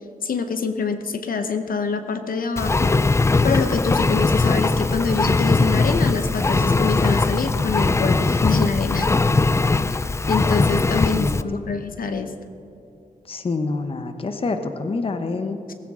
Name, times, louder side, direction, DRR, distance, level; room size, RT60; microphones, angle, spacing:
voice 1, 0.2-2.9 3.4-9.1 9.9-12.3, left 5 dB, 75° left, 8 dB, 0.9 m, -25 dB
Engine, 2.6-11.4, left 3 dB, 20° left, 0.4 m, -20 dB
voice 2, 10.9-11.4 13.2-15.6, left 3 dB, 40° left, 7 dB, 0.9 m, -27 dB
17.0 x 16.0 x 3.7 m, 2.7 s
wide cardioid pair, 120°, 15 cm